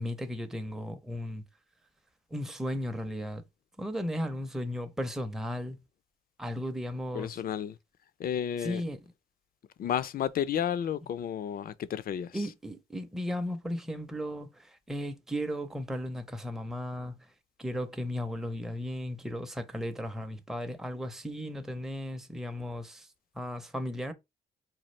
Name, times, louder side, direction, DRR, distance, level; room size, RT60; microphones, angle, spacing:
voice 1, 0.0-1.4 2.3-3.4 3.8-5.8 6.4-7.4 8.6-9.0 12.3-17.2 17.6-23.1 23.4-24.1, equal, ahead, 0.5 m, -35 dB
voice 2, 7.1-7.8 8.2-8.8 9.8-12.5, left 9 dB, 50° left, 0.4 m, -32 dB
4.1 x 2.3 x 3.1 m
cardioid pair, 90°, 20 cm